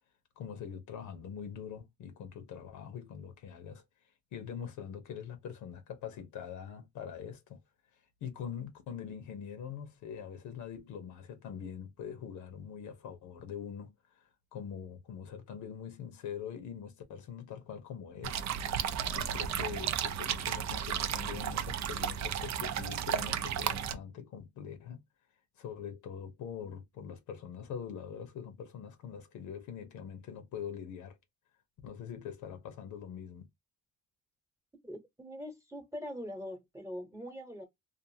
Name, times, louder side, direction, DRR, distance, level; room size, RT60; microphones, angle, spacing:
voice 1, 0.4-3.8 4.3-7.6 8.2-14.2 14.5-18.4 19.1-25.0 25.6-31.2 31.8-33.5, left 8 dB, 80° left, 0.8 m, -43 dB
sound 1, 18.2-23.9, right 9 dB, 65° right, 0.5 m, -33 dB
voice 2, 34.8-37.6, equal, 10° right, 1.0 m, -42 dB
2.5 x 2.4 x 2.6 m
cardioid pair, 90°, 30 cm